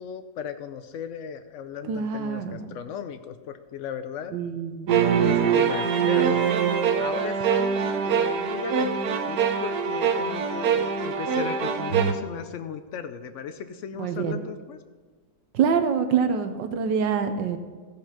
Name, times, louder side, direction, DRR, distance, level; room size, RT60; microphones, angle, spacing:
voice 1, 0.0-4.4 5.2-6.5 7.0-14.8, left 7 dB, 80° left, 9 dB, 0.6 m, -36 dB
voice 2, 1.9-2.8 4.3-5.0 14.0-14.4 15.5-17.6, right 6 dB, 85° right, 8 dB, 1.5 m, -26 dB
sound 1, 4.9-12.1, right 7 dB, 65° right, 1.3 m, -23 dB
14.5 x 5.3 x 5.8 m, 1.4 s
omnidirectional pair, 1.9 m